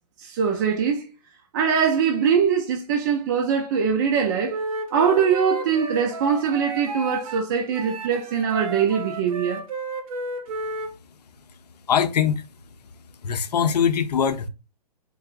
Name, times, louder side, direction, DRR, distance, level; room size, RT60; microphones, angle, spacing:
voice 1, 0.2-1.1 1.5-4.6 4.9-9.6, right 7 dB, 30° right, 0.4 m, -22 dB
Wind instrument woodwind instrument, 4.5-7.4 7.7-10.9, right 2 dB, 60° right, 1.0 m, -33 dB
voice 2, 11.1-12.5 13.0-14.5, left 7 dB, 80° left, 0.6 m, -24 dB
3.9 x 3.6 x 2.4 m
hypercardioid pair, 155°, 20 cm